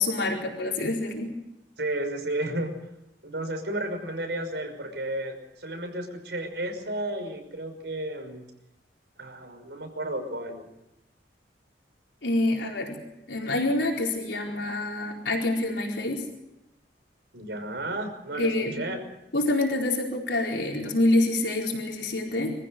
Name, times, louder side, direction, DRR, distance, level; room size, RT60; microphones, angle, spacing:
voice 1, 0.0-1.4 12.2-13.0 13.3-16.2 18.4-18.8 19.3-22.5, left 2 dB, 85° left, 0 dB, 4.5 m, -26 dB
voice 2, 1.8-2.7 3.2-8.4 9.2-10.7 17.3-19.0, right 1 dB, 70° right, 5 dB, 5.9 m, -32 dB
26.5 x 15.0 x 7.9 m, 0.90 s
head